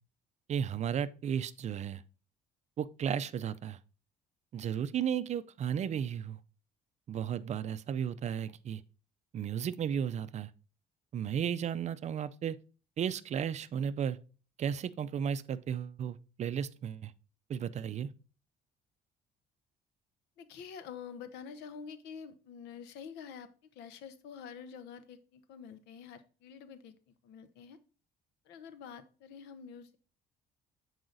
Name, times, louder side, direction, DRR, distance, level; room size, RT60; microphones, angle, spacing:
voice 1, 0.5-2.0 2.8-3.8 4.5-6.4 7.1-8.8 9.3-10.5 11.1-12.6 13.0-14.2 14.6-17.1 17.5-18.1, right 8 dB, 40° right, 0.4 m, -34 dB
voice 2, 20.4-27.8 28.4-30.0, left 6 dB, 90° left, 0.9 m, -48 dB
7.7 x 4.8 x 3.9 m
cardioid pair, 110°, 17 cm